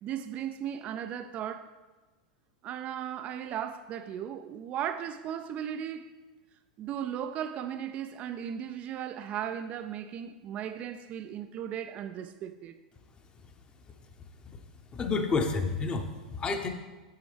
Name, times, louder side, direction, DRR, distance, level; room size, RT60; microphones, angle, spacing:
voice 1, 0.0-1.7 2.6-6.1 6.8-12.8, right 9 dB, 35° right, 0.3 m, -36 dB
voice 2, 14.9-16.7, left 4 dB, 25° left, 0.8 m, -29 dB
8.4 x 6.8 x 3.3 m
figure-of-eight pair, 95°, 4 cm